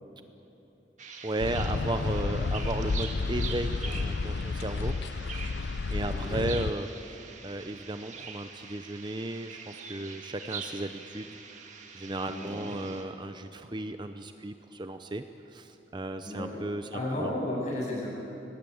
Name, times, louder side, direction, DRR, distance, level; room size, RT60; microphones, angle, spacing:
sound 1, 1.0-13.0, right 5 dB, 40° right, 2.1 m, -44 dB
voice 1, 1.2-5.0 5.9-11.4 11.9-17.3, right 1 dB, 25° right, 8 dB, 0.6 m, -35 dB
sound 2, 1.4-6.7, left 4 dB, 65° left, 0.5 m, -31 dB
voice 2, 6.0-6.4 12.3-12.7 16.2-16.6 16.9-18.1, left 1 dB, 40° left, -4 dB, 8.0 m, -33 dB
23.5 x 19.5 x 8.7 m, 2.9 s
head